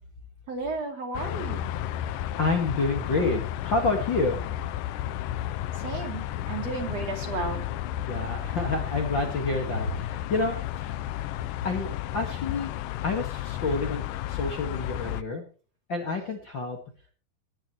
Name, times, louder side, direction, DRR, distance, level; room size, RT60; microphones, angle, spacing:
voice 1, 0.5-1.7 5.7-7.7, right 3 dB, 45° right, 3 dB, 3.6 m, -33 dB
sound 1, 1.1-15.2, left 12 dB, 80° left, 2.2 m, -32 dB
voice 2, 2.2-4.4 8.1-10.9 11.6-12.7 13.0-15.4 15.9-16.8, left 3 dB, 40° left, 2 dB, 1.9 m, -28 dB
19.0 x 10.5 x 3.1 m, 0.38 s
omnidirectional pair, 4.1 m